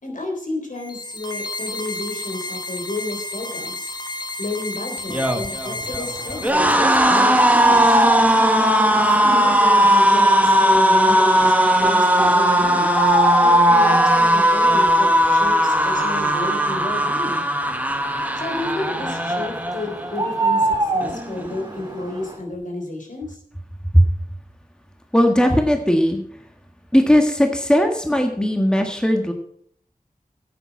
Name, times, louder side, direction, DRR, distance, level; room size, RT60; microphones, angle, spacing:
voice 1, 0.0-3.9 4.4-8.0 8.8-11.5 11.8-12.9 13.4-17.4 18.3-23.4, left 2 dB, 65° left, 1 dB, 3.6 m, -31 dB
sound 1, 0.7-6.5, left 2 dB, 30° left, 1.7 m, -31 dB
sound 2, 5.0-20.2 20.5-20.8 21.0-21.8, equal, 10° right, 1.4 m, -18 dB
sound 3, 6.0-22.4, right 1 dB, 25° right, 2.4 m, -26 dB
voice 2, 25.1-26.4 26.9-29.3, equal, 5° left, 3 dB, 1.5 m, -17 dB
10.5 x 8.7 x 5.9 m, 0.63 s
wide cardioid pair, 55°, 14 cm